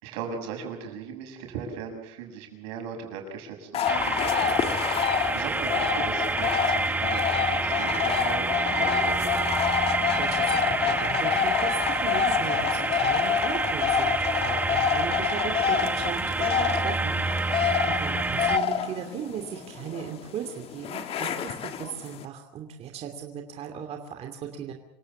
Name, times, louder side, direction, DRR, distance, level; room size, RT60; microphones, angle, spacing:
voice 1, 0.0-9.3 16.5-17.1, right 6 dB, 90° right, 3 dB, 7.0 m, -38 dB
sound 1, 3.7-22.2, left 8 dB, 40° left, 1.8 m, -27 dB
sound 2, 3.9-18.6, right 3 dB, 10° right, 1.2 m, -28 dB
voice 2, 9.9-24.7, right 8 dB, 45° right, 4 dB, 2.7 m, -37 dB
26.5 x 17.0 x 7.2 m, 0.80 s
cardioid pair, 135°, 15 cm